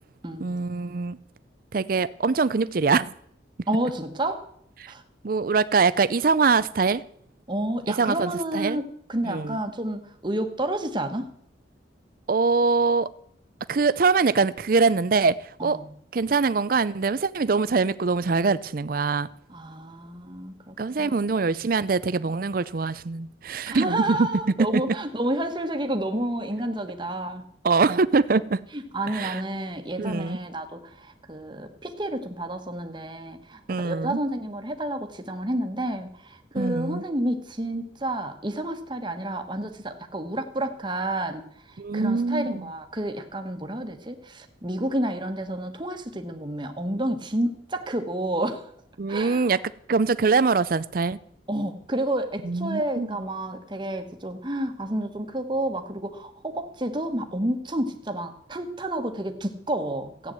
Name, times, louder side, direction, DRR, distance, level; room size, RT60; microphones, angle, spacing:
voice 1, 0.4-1.2 1.7-3.1 4.8-4.9 5.2-7.0 7.9-8.8 9.2-9.6 12.3-13.1 13.7-15.8 16.1-19.3 20.8-24.3 24.7-24.9 27.6-28.6 29.1-29.4 30.0-30.4 33.7-34.2 36.5-37.0 41.8-42.7 49.0-49.6 49.9-51.2 52.4-53.1, right 4 dB, 50° right, 0.5 m, -23 dB
voice 2, 3.7-4.4 4.9-5.0 7.5-11.3 15.6-15.9 19.5-21.4 23.7-27.4 28.7-48.6 49.1-49.5 51.5-60.3, right 1 dB, 25° right, 1.3 m, -30 dB
14.5 x 9.2 x 7.7 m
head